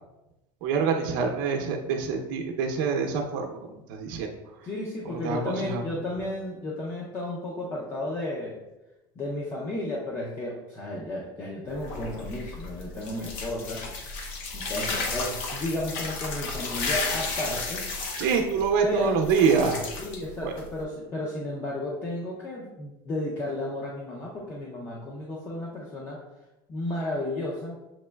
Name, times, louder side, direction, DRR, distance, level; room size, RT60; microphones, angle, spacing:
voice 1, 0.6-4.3 5.1-5.8 18.2-19.8 20.4-20.5, right 5 dB, 70° right, 2 dB, 0.6 m, -26 dB
voice 2, 4.6-8.6 9.2-13.8 14.5-17.8 18.8-19.2 20.0-26.2 26.7-27.8, left 1 dB, 20° left, -3 dB, 0.5 m, -33 dB
sound 1, 11.7-20.8, left 3 dB, 60° left, 0.6 m, -33 dB
7.1 x 2.9 x 2.2 m, 0.97 s
cardioid pair, 175°, 11 cm